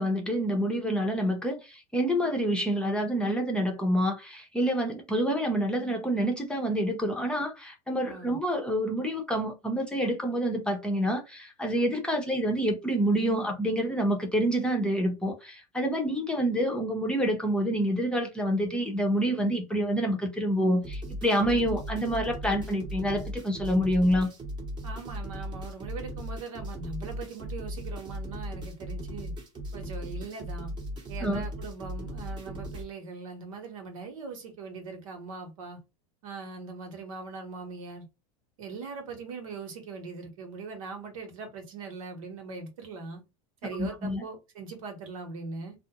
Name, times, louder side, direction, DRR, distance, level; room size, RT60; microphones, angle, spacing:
voice 1, 0.0-24.3 31.2-31.4 43.8-44.2, equal, 5° left, 0.7 m, -27 dB
voice 2, 8.0-8.4 24.8-29.3 29.7-30.7 31.1-35.8 36.2-38.1 38.6-43.2 43.6-45.7, right 4 dB, 80° right, 1.0 m, -41 dB
sound 1, 20.8-32.8, equal, 25° right, 0.9 m, -37 dB
2.4 x 2.0 x 2.9 m
hypercardioid pair, 105°, 17 cm